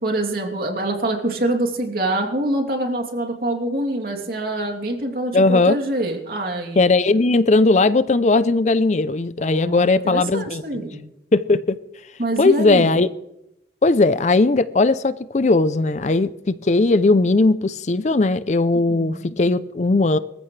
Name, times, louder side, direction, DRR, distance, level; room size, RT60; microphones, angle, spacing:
voice 1, 0.0-6.8 9.4-11.0 12.2-13.0 18.9-19.2, right 1 dB, 55° right, 2 dB, 3.0 m, -25 dB
voice 2, 5.3-5.8 6.8-10.6 11.3-11.8 12.4-13.1 13.8-20.2, left 3 dB, 40° left, 15 dB, 0.5 m, -18 dB
25.5 x 14.5 x 3.3 m, 0.88 s
head